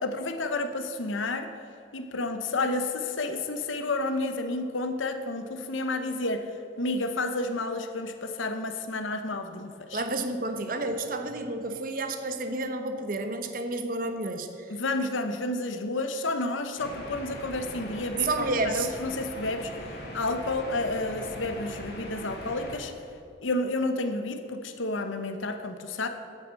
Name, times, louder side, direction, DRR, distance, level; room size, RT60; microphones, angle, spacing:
voice 1, 0.0-1.5 1.9-6.5 6.8-10.0 14.7-18.3 18.6-19.7 20.1-22.9 23.4-26.1, left 2 dB, 85° left, 7 dB, 0.9 m, -30 dB
voice 2, 9.9-14.5 18.2-18.9, right 2 dB, 45° right, 7 dB, 0.9 m, -30 dB
sound 1, 16.8-22.8, left 1 dB, 50° left, 2.5 m, -40 dB
9.4 x 8.6 x 7.5 m, 2.8 s
head